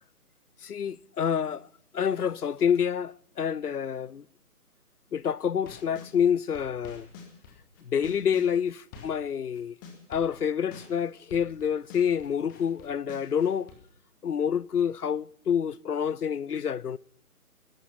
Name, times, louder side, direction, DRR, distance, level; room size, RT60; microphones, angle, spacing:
voice 1, 0.6-1.6 1.9-4.2 5.1-7.1 7.9-9.7 10.1-13.7 14.2-17.0, left 8 dB, 80° left, 0.7 m, -27 dB
sound 1, 5.4-6.1 6.5-9.3 9.5-13.7, left 5 dB, 15° left, 1.3 m, -47 dB
20.0 x 11.5 x 5.8 m
figure-of-eight pair, 145°, 45 cm